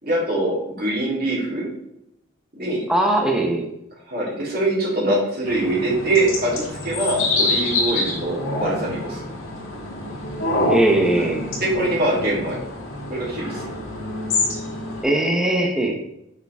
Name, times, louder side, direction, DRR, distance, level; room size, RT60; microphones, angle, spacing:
voice 1, 0.0-1.7 2.6-2.8 4.1-9.2 11.1-11.3 11.6-12.6 13.1-13.6, right 1 dB, 45° right, -5 dB, 3.4 m, -23 dB
voice 2, 2.9-3.7 10.7-11.6 15.0-16.0, right 1 dB, 5° right, 0 dB, 1.0 m, -20 dB
sound 1, 5.5-15.0, left 2 dB, 90° left, 3.2 m, -26 dB
8.5 x 6.8 x 3.6 m, 0.80 s
head